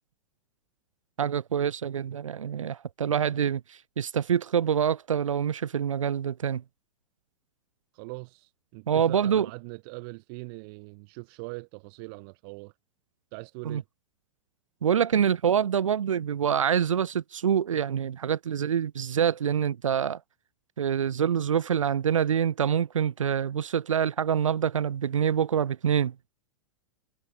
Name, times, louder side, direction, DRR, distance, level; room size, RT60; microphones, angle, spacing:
voice 1, 1.2-6.6 8.9-9.5 13.7-13.8 14.8-20.2 20.8-26.1, right 8 dB, 80° right, 0.5 m, -26 dB
voice 2, 7.9-12.7 13.3-13.8, right 31 dB, 50° right, 1.2 m, -41 dB
figure-of-eight pair, 100°, 16 cm